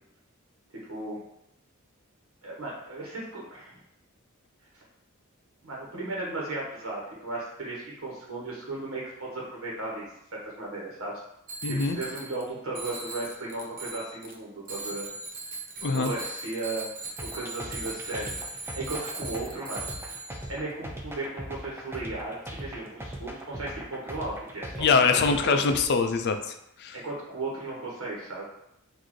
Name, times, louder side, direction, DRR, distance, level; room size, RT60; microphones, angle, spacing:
voice 1, 0.9-1.2 2.4-3.8 4.7-4.8 5.6-10.1 10.3-11.2 11.7-15.1 15.9-16.9 17.3-18.4 18.7-19.9 20.5-25.7 26.9-28.4, right 2 dB, 70° right, -4 dB, 1.2 m, -35 dB
Bicycle bell, 11.5-12.4 12.7-14.3 14.7-20.6, right 2 dB, 40° right, 0.8 m, -39 dB
voice 2, 11.6-12.0 15.8-16.1 24.8-27.0, left 5 dB, 50° left, 7 dB, 0.4 m, -24 dB
sound 1, 17.2-25.8, right 1 dB, 10° right, 0.5 m, -39 dB
6.1 x 2.6 x 3.1 m, 0.80 s
head